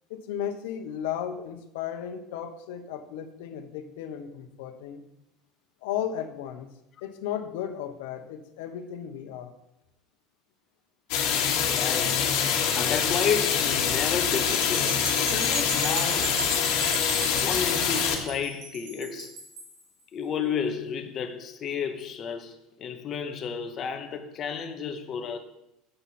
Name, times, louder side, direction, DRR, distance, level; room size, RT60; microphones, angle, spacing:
voice 1, 0.1-5.0 5.8-6.7 7.0-9.5, left 9 dB, 85° left, 0.9 m, -35 dB
sound 1, 11.1-18.2, left 8 dB, 65° left, 1.4 m, -25 dB
voice 2, 11.6-16.4 17.4-19.4 20.1-25.4, left 6 dB, 30° left, 0.8 m, -32 dB
sound 2, 14.5-19.8, right 3 dB, 80° right, 1.9 m, -36 dB
7.8 x 4.2 x 5.9 m
cardioid pair, 170°, 0 cm